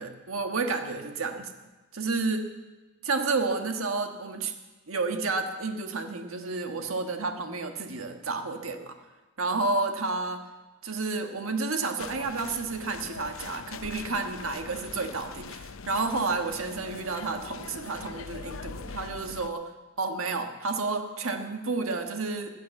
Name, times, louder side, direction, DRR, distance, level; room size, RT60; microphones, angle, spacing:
voice 1, 0.0-1.5 1.9-2.4 3.0-4.5 4.9-9.0 9.4-10.4 10.8-19.7 20.0-22.5, right 3 dB, 80° right, 5 dB, 1.4 m, -30 dB
sound 1, 12.0-19.5, left 5 dB, 75° left, 0.7 m, -42 dB
16.0 x 9.6 x 8.2 m, 1.2 s
head